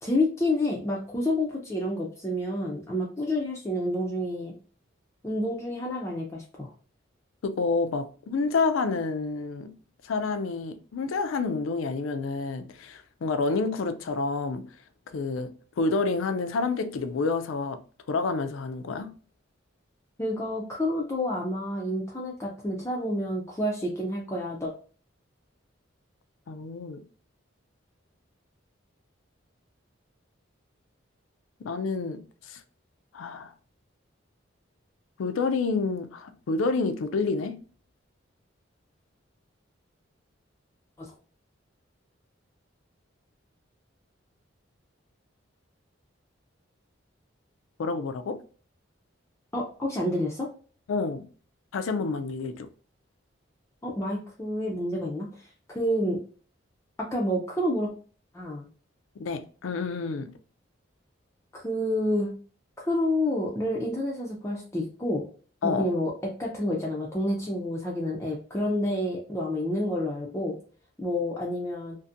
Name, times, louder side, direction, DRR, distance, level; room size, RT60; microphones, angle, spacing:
voice 1, 0.0-4.5 5.2-6.7 20.2-24.7 41.0-41.1 49.5-50.5 53.8-55.3 55.7-56.2 57.0-57.9 58.3-58.7 61.5-62.3 62.8-65.2 65.6-66.1 66.4-70.6 71.0-72.0, left 1 dB, 15° left, 0.4 m, -29 dB
voice 2, 7.4-9.7 10.0-14.6 15.1-17.8 18.1-19.1 26.5-27.0 31.6-32.2 32.5-32.6 33.1-33.5 35.2-37.6 47.8-48.4 50.9-51.2 51.7-52.7 59.2-60.3 65.6-65.9, left 4 dB, 80° left, 0.4 m, -28 dB
2.6 x 2.5 x 2.4 m
head